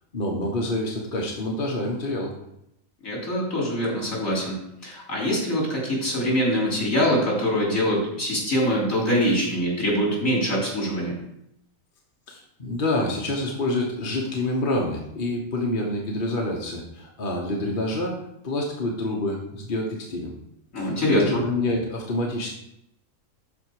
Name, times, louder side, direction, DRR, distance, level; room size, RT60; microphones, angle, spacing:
voice 1, 0.1-2.3 12.3-18.2 18.4-20.3 20.8-22.6, left 1 dB, 40° left, -2 dB, 1.4 m, -27 dB
voice 2, 3.0-11.2 20.7-21.2, equal, 70° left, -3 dB, 3.8 m, -24 dB
12.5 x 4.6 x 4.8 m, 0.80 s
omnidirectional pair, 1.4 m